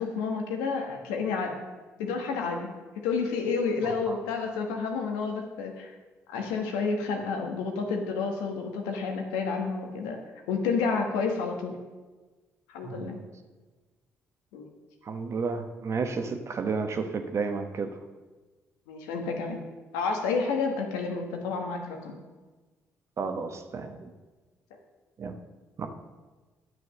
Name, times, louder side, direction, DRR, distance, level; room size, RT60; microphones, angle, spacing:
voice 1, 0.0-1.5 2.0-2.7 3.0-5.9 6.3-10.2 10.5-11.7 12.7-13.2 14.5-14.7 18.9-19.6 19.9-22.2, left 4 dB, 90° left, 3 dB, 1.4 m, -30 dB
voice 2, 3.8-4.2 12.8-13.2 15.0-18.0 23.2-24.1 25.2-25.4 25.8-25.9, right 4 dB, 50° right, 7 dB, 1.2 m, -32 dB
9.8 x 6.2 x 6.5 m, 1.3 s
supercardioid pair, 60°, 6 cm